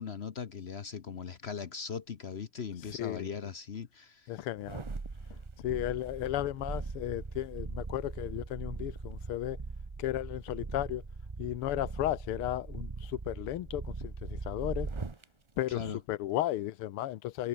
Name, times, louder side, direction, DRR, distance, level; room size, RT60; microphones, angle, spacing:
voice 1, 0.0-4.4 15.7-16.0, left 6 dB, 50° left, 0.8 m, -39 dB
voice 2, 3.0-3.3 4.3-4.8 5.6-9.6 10.0-11.0 11.4-14.9 15.6-17.5, left 14 dB, 85° left, 1.8 m, -34 dB
sound 1, 4.6-15.2 15.7-15.8, right 3 dB, 50° right, 0.3 m, -40 dB
omnidirectional pair, 2.4 m